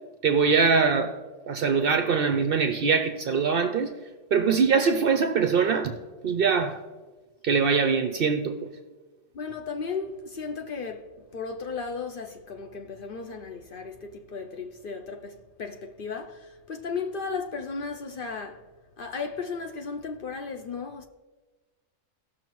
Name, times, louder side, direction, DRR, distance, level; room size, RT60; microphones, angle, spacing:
voice 1, 0.2-1.2 1.5-3.9 4.3-5.9 6.2-6.8 7.4-8.5, right 5 dB, 60° right, 0.6 m, -22 dB
voice 2, 9.3-18.6 19.0-21.1, left 5 dB, 60° left, 0.6 m, -35 dB
17.0 x 6.3 x 3.0 m
omnidirectional pair, 1.4 m